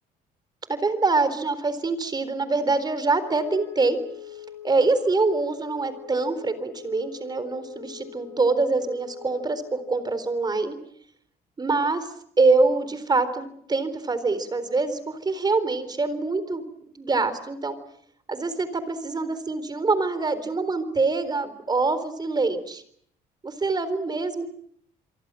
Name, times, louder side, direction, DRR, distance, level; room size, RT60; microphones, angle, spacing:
voice 1, 0.7-4.0 4.3-10.8 11.6-16.6 16.9-17.8 18.3-22.8 23.4-24.5, right 3 dB, 25° right, 13 dB, 3.9 m, -25 dB
Wind instrument woodwind instrument, 2.9-10.1, left 10 dB, 10° left, 5.7 m, -43 dB
27.5 x 23.5 x 7.7 m, 0.66 s
cardioid pair, 110°, 17 cm